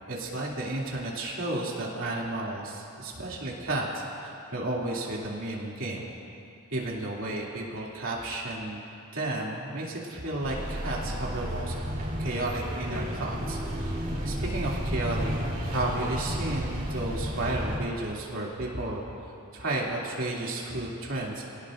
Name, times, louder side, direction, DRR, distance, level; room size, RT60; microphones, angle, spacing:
voice 1, 0.1-6.1 6.7-8.8 9.1-11.8 12.2-14.0 14.2-15.3 15.6-19.0 19.5-21.5, right 2 dB, 65° right, -4 dB, 2.8 m, -32 dB
sound 1, 10.4-17.8, equal, 40° right, 3.9 m, -32 dB
26.5 x 18.5 x 2.6 m, 2.7 s
head